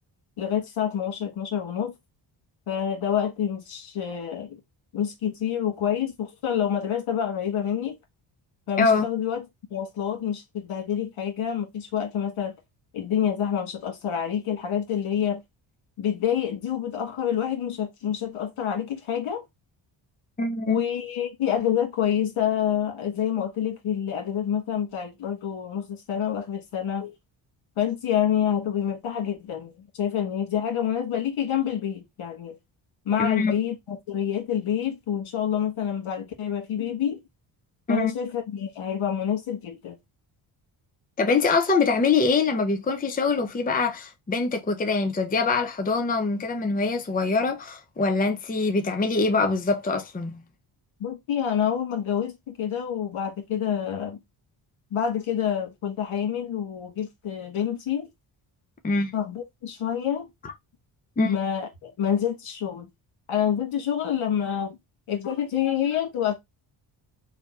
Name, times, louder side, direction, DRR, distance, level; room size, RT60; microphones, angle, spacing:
voice 1, 0.4-1.9 2.7-4.6 4.9-8.0 8.7-9.4 9.7-12.5 12.9-15.4 16.0-19.4 20.7-27.1 27.8-32.6 33.0-37.2 37.9-40.0 51.0-54.2 54.9-58.1 59.1-60.3 61.2-62.9 63.3-64.8 65.1-66.3, left 9 dB, 75° left, 1.5 m, -27 dB
voice 2, 20.4-20.8 33.2-33.5 37.9-38.1 41.2-50.4 58.8-59.1 61.2-61.3, left 4 dB, 20° left, 0.6 m, -24 dB
3.3 x 2.3 x 4.3 m
cardioid pair, 80°, 48 cm